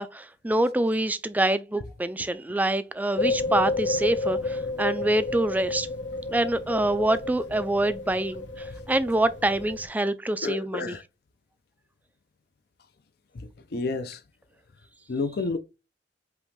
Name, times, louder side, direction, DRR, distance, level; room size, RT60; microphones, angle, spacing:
voice 1, 0.0-5.9 6.3-11.0, right 1 dB, 10° right, 0.3 m, -26 dB
sound 1, 3.2-9.9, left 2 dB, 85° left, 1.1 m, -31 dB
voice 2, 10.4-11.0 13.3-14.2 15.1-15.6, left 3 dB, 60° left, 0.5 m, -30 dB
5.3 x 2.9 x 3.1 m
head